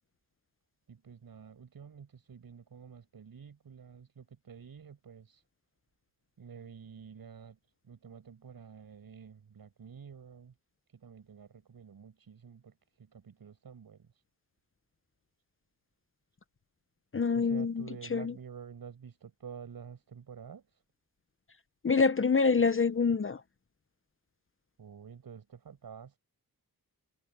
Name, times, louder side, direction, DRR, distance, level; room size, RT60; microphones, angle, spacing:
voice 1, 0.9-5.4 6.4-7.6 7.8-10.5 10.9-14.1 17.3-20.8 24.8-26.2, right 7 dB, 70° right, 6.8 m, -49 dB
voice 2, 17.1-17.8 18.1-18.3 21.8-23.4, left 5 dB, 35° left, 1.0 m, -26 dB
cardioid pair, 70°, 37 cm